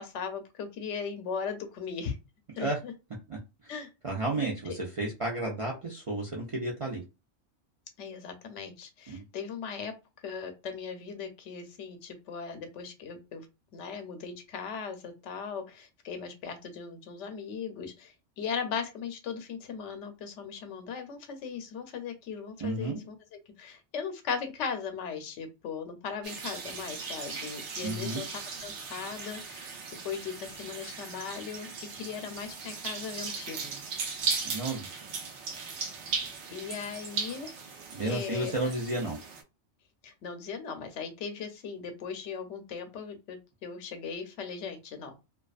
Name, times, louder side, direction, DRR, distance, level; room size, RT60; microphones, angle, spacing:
voice 1, 0.0-2.2 2.5-2.9 3.7-3.9 4.7-4.8 8.0-13.5 13.7-23.1 23.6-29.7 30.0-33.8 36.5-37.5 38.0-38.7 40.0-45.2, left 6 dB, 85° left, 0.9 m, -38 dB
voice 2, 4.0-7.0 9.1-9.2 22.6-23.0 27.8-28.2 34.4-34.9 37.9-39.2, right 2 dB, 45° right, 0.4 m, -32 dB
sound 1, 26.2-39.4, right 5 dB, 80° right, 0.9 m, -38 dB
2.4 x 2.3 x 2.3 m
omnidirectional pair, 1.2 m